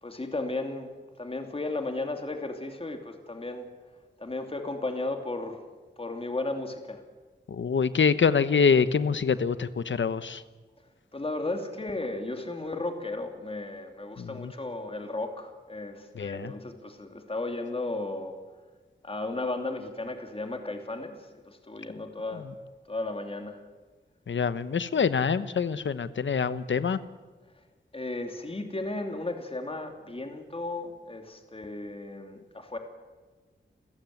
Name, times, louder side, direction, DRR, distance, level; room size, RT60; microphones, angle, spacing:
voice 1, 0.0-0.9 1.2-3.6 4.2-5.6 6.0-7.0 11.1-18.4 19.0-22.4 22.9-23.6 27.9-32.8, left 2 dB, 30° left, 5 dB, 2.8 m, -34 dB
voice 2, 7.5-10.4 14.2-14.5 16.1-16.5 24.3-27.0, left 6 dB, 80° left, 14 dB, 1.1 m, -25 dB
29.0 x 15.0 x 9.5 m, 1.3 s
wide cardioid pair, 85°, 19 cm